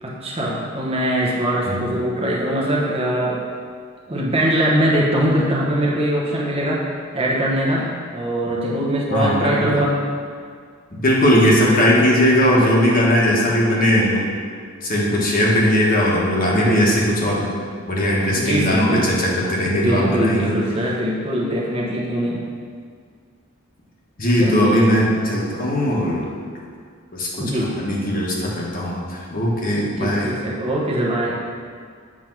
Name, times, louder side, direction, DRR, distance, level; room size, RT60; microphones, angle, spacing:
voice 1, 0.0-3.4 4.1-6.9 7.1-10.0 16.5-17.0 18.3-19.2 19.6-22.4 24.4-24.9 27.4-27.7 29.8-31.4, right 1 dB, 30° right, -4 dB, 1.0 m, -22 dB
voice 2, 9.1-9.8 10.9-14.2 14.8-17.5 17.9-20.6 24.2-26.2 27.1-30.3, equal, 45° left, -4 dB, 1.2 m, -19 dB
7.4 x 3.4 x 6.0 m, 2.1 s
head